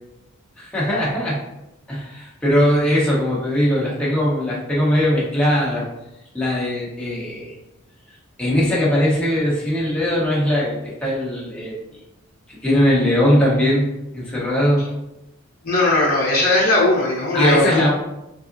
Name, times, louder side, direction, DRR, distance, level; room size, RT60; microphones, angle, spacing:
voice 1, 0.6-1.4 1.9-5.8 6.3-7.5 8.4-11.8 12.5-14.8 17.3-17.9, equal, 5° left, -7 dB, 0.8 m, -20 dB
voice 2, 15.6-17.9, left 2 dB, 45° left, -5 dB, 0.7 m, -18 dB
3.5 x 2.0 x 2.4 m, 0.89 s
head